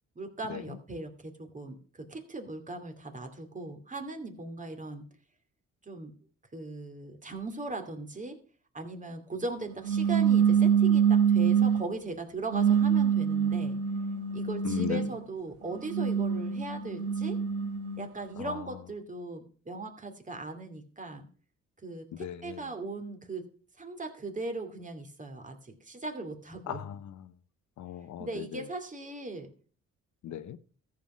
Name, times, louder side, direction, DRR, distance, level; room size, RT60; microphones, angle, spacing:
voice 1, 0.2-5.0 5.8-6.1 6.5-8.4 8.7-13.8 14.3-17.4 18.0-21.2 21.8-23.5 23.8-26.8 28.2-29.5, right 2 dB, 25° right, 2.5 m, -39 dB
sound 1, 9.8-11.9 12.5-15.2 15.8-18.0, right 7 dB, 80° right, 1.3 m, -25 dB
voice 2, 14.6-15.0 18.4-18.5 22.2-22.6 26.7-27.1 27.8-28.6 30.2-30.6, left 11 dB, 70° left, 0.8 m, -36 dB
14.0 x 5.8 x 6.2 m
cardioid pair, 90°, 30 cm